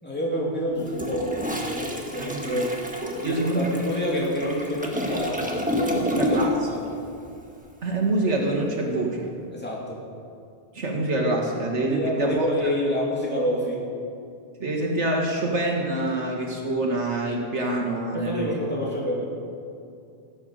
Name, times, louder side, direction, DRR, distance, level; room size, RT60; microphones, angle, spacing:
voice 1, 0.0-2.7 3.2-7.0 9.5-10.0 11.9-13.8 18.1-19.3, equal, 10° left, -5 dB, 2.8 m, -28 dB
Toilet flush, 0.8-6.8 7.0-7.3, equal, 5° right, 1.4 m, -29 dB
voice 2, 2.2-2.6 3.0-3.7 6.1-6.5 7.8-9.3 10.7-12.5 14.6-18.6, right 2 dB, 85° right, 0 dB, 2.2 m, -26 dB
16.0 x 8.9 x 6.6 m, 2.5 s
omnidirectional pair, 1.2 m